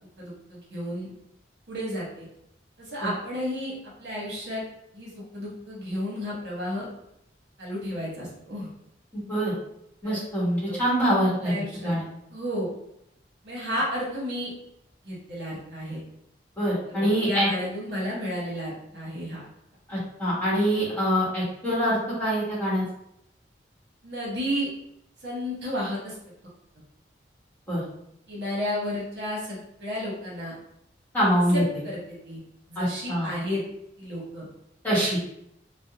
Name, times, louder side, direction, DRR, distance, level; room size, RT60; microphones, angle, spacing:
voice 1, 0.2-1.1 1.7-2.3 2.8-3.7 4.0-4.6 4.9-6.9 7.6-8.7 10.0-10.2 10.7-10.8 11.4-11.9 12.3-12.7 13.4-14.5 15.0-16.0 16.8-19.4 24.0-24.7 25.2-26.1 28.3-30.5 31.5-32.4 32.7-33.6 34.0-34.5, equal, 65° right, -5 dB, 0.9 m, -32 dB
voice 2, 9.1-9.5 10.0-12.1 16.6-17.5 19.9-22.8 27.7-27.8 31.1-31.6 32.7-33.3 34.8-35.2, equal, 10° left, -9 dB, 1.0 m, -25 dB
2.5 x 2.0 x 2.8 m, 0.77 s
head